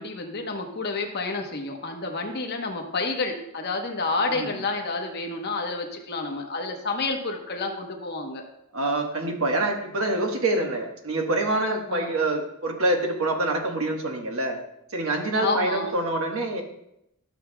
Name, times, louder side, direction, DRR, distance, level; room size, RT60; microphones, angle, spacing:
voice 1, 0.0-8.4 11.9-12.1 15.4-15.9, left 3 dB, 50° left, 3 dB, 0.9 m, -29 dB
voice 2, 8.7-14.6 14.9-16.6, right 2 dB, 70° right, 2 dB, 1.2 m, -26 dB
12.0 x 6.9 x 2.2 m, 0.80 s
head